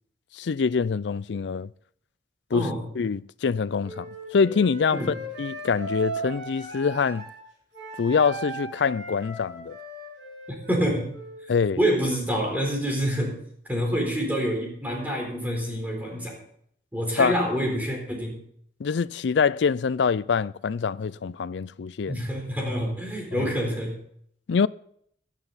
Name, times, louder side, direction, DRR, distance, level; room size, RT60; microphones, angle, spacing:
voice 1, 0.3-1.7 2.5-2.7 3.0-7.3 8.0-9.8 11.5-11.8 17.2-17.4 18.8-22.2 23.3-23.5 24.5-24.7, left 5 dB, 70° left, 0.4 m, -25 dB
voice 2, 2.5-2.8 4.9-5.1 10.7-11.1 11.8-13.4 13.7-16.4 16.9-18.4 22.1-24.0, equal, 10° right, 4.0 m, -27 dB
Wind instrument woodwind instrument, 3.8-7.4 7.7-11.5, right 2 dB, 70° right, 6.9 m, -38 dB
18.5 x 11.0 x 4.1 m
head